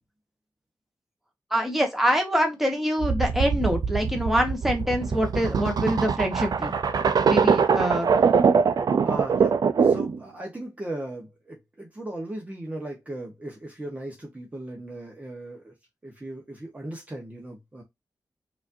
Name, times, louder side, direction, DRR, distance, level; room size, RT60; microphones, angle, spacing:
voice 1, 1.5-6.8 7.2-8.1, equal, 5° right, 1.3 m, -25 dB
sound 1, 3.0-10.2, right 6 dB, 75° right, 0.4 m, -22 dB
voice 2, 9.0-15.7 16.0-17.8, right 1 dB, 20° right, 1.1 m, -37 dB
4.9 x 2.7 x 2.6 m
wide cardioid pair, 110°, 7 cm